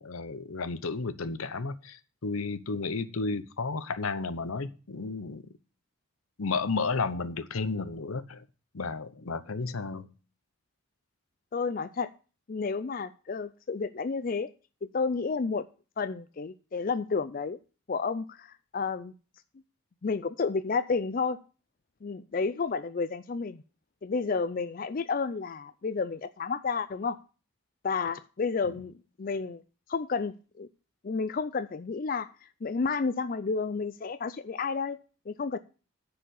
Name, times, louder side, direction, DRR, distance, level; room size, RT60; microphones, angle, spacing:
voice 1, 0.0-5.4 6.4-8.4 8.7-10.1 28.7-28.8, left 4 dB, 80° left, 0.8 m, -32 dB
voice 2, 11.5-12.1 12.5-14.5 14.8-15.7 16.0-17.6 17.9-19.1 20.0-21.4 22.0-23.6 24.0-27.2 27.8-29.6 29.9-30.7 31.0-35.0 35.3-35.6, left 4 dB, 40° left, 0.4 m, -31 dB
10.0 x 4.9 x 8.1 m
head